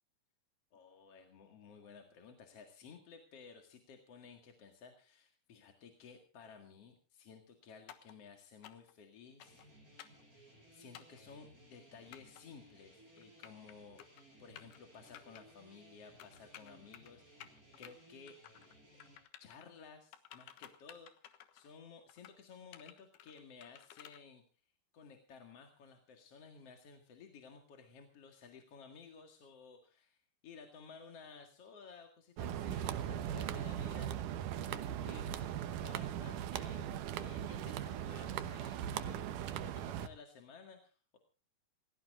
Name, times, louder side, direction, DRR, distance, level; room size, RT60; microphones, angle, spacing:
voice 1, 0.7-9.7 10.3-18.4 19.4-24.6 24.9-41.2, left 5 dB, 45° left, 4 dB, 2.5 m, -56 dB
sound 1, 7.9-8.1 8.6-8.9 9.4-9.7 10.0-10.2 10.9-11.2 12.1-12.4 13.2-13.7 14.0-14.2 14.6-14.8 15.1-15.4 16.2-17.1 17.4-17.9 18.3-18.7 19.0-19.7 20.1-21.7 22.1-22.4 22.7-24.2, left 11 dB, 85° left, 3.3 m, -54 dB
sound 2, 9.4-19.2, right 1 dB, 20° right, 6.6 m, -62 dB
sound 3, 32.4-40.1, right 10 dB, 70° right, 2.2 m, -39 dB
28.0 x 16.0 x 2.5 m, 0.35 s
omnidirectional pair, 4.4 m